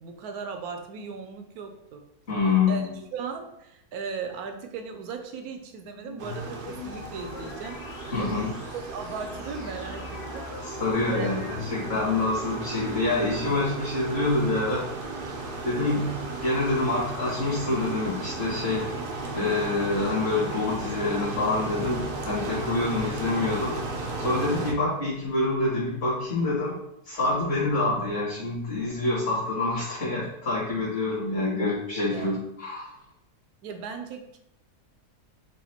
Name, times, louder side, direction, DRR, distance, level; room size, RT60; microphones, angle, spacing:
voice 1, 0.0-2.1 2.7-7.8 8.2-8.5 8.9-10.5 11.1-11.4 32.1-32.3 33.6-34.4, right 5 dB, 75° right, 6 dB, 1.0 m, -37 dB
voice 2, 2.3-2.8 8.1-8.5 10.6-14.9 15.6-16.1 16.4-19.0 19.3-23.8 24.2-26.8 27.1-32.9, left 2 dB, 50° left, -11 dB, 1.9 m, -26 dB
sound 1, 5.9-12.2, left 5 dB, 80° left, 0.5 m, -43 dB
sound 2, 6.2-24.7, right 2 dB, 60° right, 0.5 m, -35 dB
4.9 x 2.4 x 4.3 m, 0.83 s
omnidirectional pair, 1.7 m